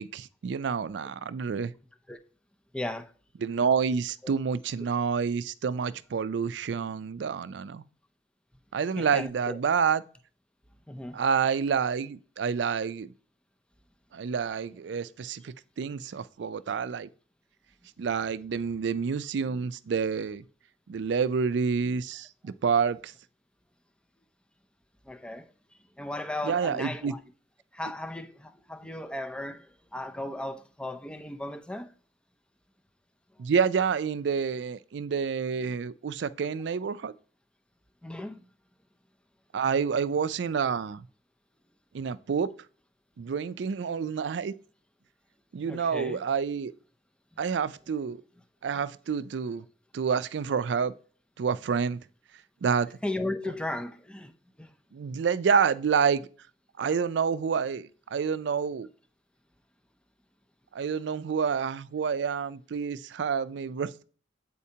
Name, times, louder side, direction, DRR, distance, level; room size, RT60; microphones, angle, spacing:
voice 1, 0.0-1.7 3.4-7.8 8.7-10.0 11.1-13.1 14.1-17.1 18.0-20.4 20.9-23.1 26.4-27.1 33.4-37.1 39.5-41.0 41.9-42.5 43.2-44.5 45.5-46.7 47.4-48.2 48.6-49.6 49.9-50.9 51.4-52.0 52.6-52.9 54.9-56.3 56.8-58.9 60.7-64.0, right 6 dB, 65° right, 0.4 m, -28 dB
voice 2, 2.7-3.1 4.2-4.3 9.0-9.6 10.9-11.2 25.0-25.5 26.0-27.2 27.7-31.9 38.0-38.5 45.7-46.2 53.0-54.3 54.6-54.8, left 1 dB, 5° left, 0.5 m, -36 dB
8.4 x 4.3 x 2.8 m
head